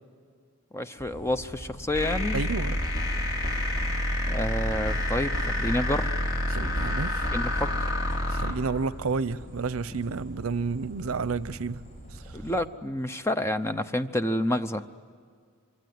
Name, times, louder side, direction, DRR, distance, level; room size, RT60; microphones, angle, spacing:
voice 1, 0.7-2.4 4.3-6.1 7.3-7.9 12.3-14.8, left 1 dB, 10° left, 10 dB, 0.7 m, -29 dB
sound 1, 1.0-12.6, right 1 dB, 35° left, 5.7 m, -44 dB
sound 2, 1.9-8.5, left 1 dB, 70° left, 4.4 m, -28 dB
voice 2, 2.3-2.8 6.5-7.3 8.3-11.8, right 4 dB, 90° right, 18 dB, 0.7 m, -30 dB
26.0 x 23.5 x 9.5 m, 2.1 s
head